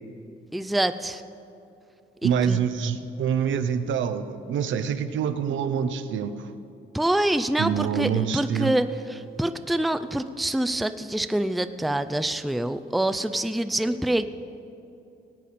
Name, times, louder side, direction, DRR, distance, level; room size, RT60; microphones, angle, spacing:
voice 1, 0.5-1.2 2.2-2.6 6.9-14.2, right 1 dB, ahead, 10 dB, 0.4 m, -26 dB
voice 2, 2.2-6.5 7.6-8.7, right 7 dB, 75° right, 10 dB, 0.7 m, -26 dB
19.5 x 8.3 x 4.2 m, 2.7 s
cardioid pair, 90°, 20 cm